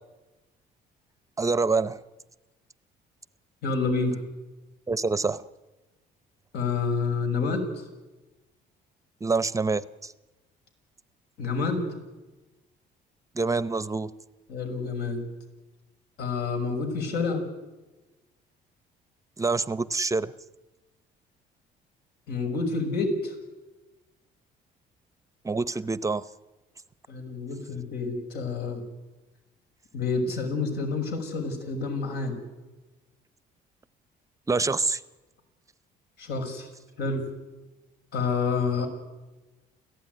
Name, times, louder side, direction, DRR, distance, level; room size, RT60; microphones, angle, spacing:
voice 1, 1.4-2.0 4.9-5.4 9.2-10.1 13.3-14.1 19.4-20.3 25.4-26.3 34.5-35.0, right 3 dB, 20° right, 16 dB, 0.7 m, -26 dB
voice 2, 3.6-4.2 6.5-7.8 11.4-11.9 14.5-15.3 16.2-17.4 22.3-23.3 27.1-28.8 29.9-32.4 36.2-36.7 37.0-37.3 38.1-38.9, left 4 dB, 75° left, 5 dB, 6.1 m, -28 dB
29.0 x 16.0 x 9.5 m, 1.1 s
cardioid pair, 110°, 17 cm